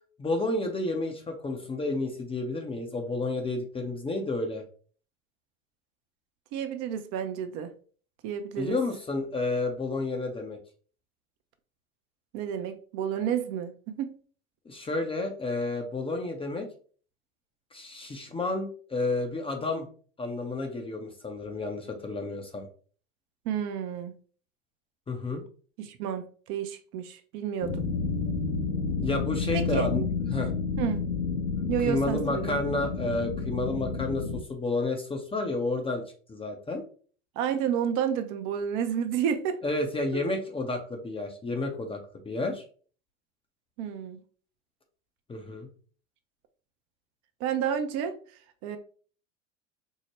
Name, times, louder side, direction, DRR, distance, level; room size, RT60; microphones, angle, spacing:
voice 1, 0.2-4.6 8.6-10.6 14.7-16.7 17.7-19.9 20.2-22.7 25.1-25.4 29.0-30.0 30.3-30.5 31.9-36.0 36.3-36.8 39.6-42.6 45.3-45.7, left 2 dB, 15° left, 0.5 m, -31 dB
voice 2, 6.5-7.7 8.2-8.8 12.3-14.1 23.5-24.1 25.8-27.9 29.5-29.9 30.8-31.0 31.7-32.6 37.4-39.6 43.8-44.2 47.4-48.2 48.6-48.8, right 8 dB, 50° right, 0.6 m, -30 dB
sound 1, 27.6-34.4, left 4 dB, 80° left, 1.1 m, -30 dB
4.5 x 2.1 x 3.0 m
hypercardioid pair, 85°, 40 cm